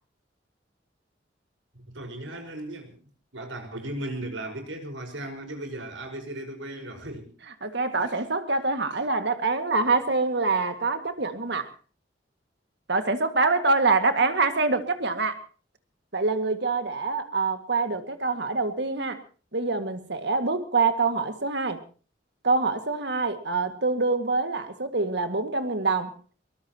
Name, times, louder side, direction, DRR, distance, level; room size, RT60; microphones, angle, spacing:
voice 1, 1.7-3.0 3.3-7.3 8.0-8.2, right 1 dB, 90° right, 5 dB, 5.1 m, -36 dB
voice 2, 7.6-11.7 12.9-15.4 16.1-19.2 19.5-21.8 22.4-26.1, right 3 dB, 60° right, 8 dB, 2.1 m, -25 dB
23.0 x 20.0 x 3.0 m, 0.37 s
head